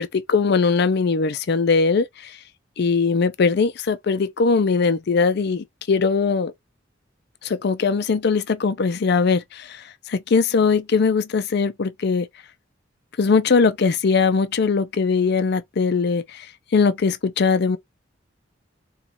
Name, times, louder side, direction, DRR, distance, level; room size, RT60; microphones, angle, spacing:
voice 1, 0.0-2.1 2.8-6.5 7.4-9.7 10.1-12.3 13.2-16.2 16.7-17.8, left 4 dB, 60° left, 0.5 m, -20 dB
4.2 x 2.4 x 2.5 m
head